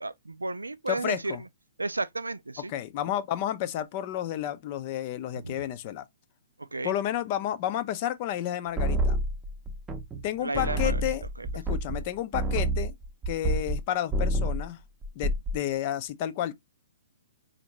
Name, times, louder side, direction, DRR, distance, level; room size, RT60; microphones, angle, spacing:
voice 1, 0.0-1.4 1.8-2.7 5.4-5.6 6.7-6.9 10.4-11.0 11.4-11.5, right 3 dB, 85° right, 0.4 m, -33 dB
voice 2, 0.9-1.4 2.7-6.0 6.8-9.2 10.2-11.2 11.5-12.9 13.3-14.8 15.2-16.5, left 11 dB, 40° left, 0.5 m, -31 dB
sound 1, 8.8-10.3 10.5-13.8 14.1-14.7 15.0-15.6, right 1 dB, 15° right, 0.7 m, -28 dB
4.2 x 2.6 x 2.9 m
figure-of-eight pair, 120°, 0 cm